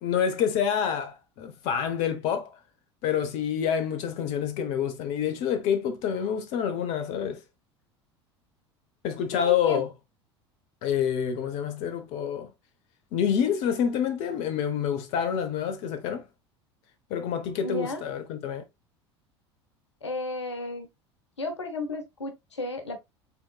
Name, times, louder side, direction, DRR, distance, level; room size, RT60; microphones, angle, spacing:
voice 1, 0.0-2.6 3.0-7.4 9.0-9.9 10.8-12.5 13.1-16.2 17.1-18.6, left 8 dB, 50° left, 0.8 m, -27 dB
voice 2, 9.3-9.8 17.6-18.0 20.0-20.9 21.4-23.0, left 2 dB, 80° left, 1.0 m, -33 dB
5.6 x 3.7 x 2.2 m
figure-of-eight pair, 70°, 14 cm